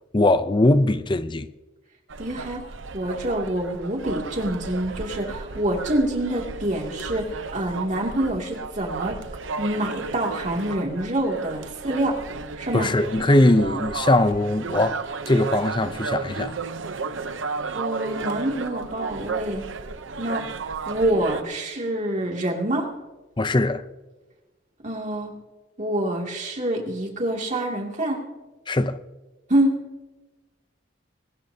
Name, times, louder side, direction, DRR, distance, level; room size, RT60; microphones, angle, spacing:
voice 1, 0.1-1.5 12.7-15.0 15.3-16.5 23.4-23.8 28.7-29.0, left 2 dB, 25° left, 0.6 m, -20 dB
sound 1, 2.1-21.4, right 4 dB, 90° right, 0.8 m, -33 dB
voice 2, 2.2-2.7 2.9-9.2 9.6-12.2 12.6-12.9 17.7-19.7 20.2-20.4 20.9-22.9 24.8-25.3 25.8-28.2 29.5-29.8, right 1 dB, 40° right, 2.6 m, -26 dB
22.5 x 19.5 x 2.8 m
head